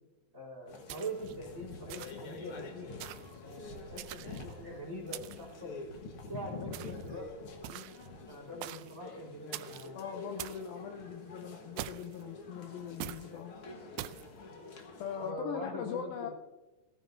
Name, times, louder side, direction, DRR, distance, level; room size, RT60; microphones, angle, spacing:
voice 1, 0.3-2.9 3.4-5.8 6.3-7.3 7.5-7.9 8.3-10.0 15.2-16.3, right 1 dB, 20° right, -2 dB, 3.5 m, -43 dB
sound 1, 0.7-15.3, left 3 dB, 60° left, 1.5 m, -47 dB
sound 2, 0.9-1.4 1.9-2.3 3.0-3.4 4.0-4.5 5.1-5.5 6.7-7.1 7.6-8.1 8.6-9.0 9.5-9.9 10.4-10.7 11.8-12.2 13.0-13.3 14.0-14.3, right 15 dB, 85° right, 2.5 m, -43 dB
sound 3, 3.6-8.5, right 3 dB, 60° right, 2.7 m, -60 dB
voice 2, 10.0-13.5 15.0-16.3, left 8 dB, 80° left, 3 dB, 2.5 m, -41 dB
19.0 x 14.5 x 2.7 m, 1.1 s
omnidirectional pair, 4.3 m